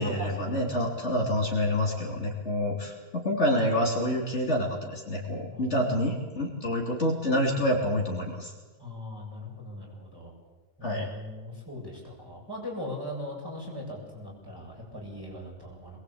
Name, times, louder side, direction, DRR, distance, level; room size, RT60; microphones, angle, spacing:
voice 1, 0.0-8.5 10.8-11.1, left 1 dB, 55° left, 0 dB, 3.6 m, -27 dB
voice 2, 5.5-6.1 8.8-10.3 10.8-16.0, left 1 dB, 15° right, -3 dB, 7.7 m, -40 dB
22.5 x 21.0 x 8.7 m, 1.3 s
omnidirectional pair, 1.4 m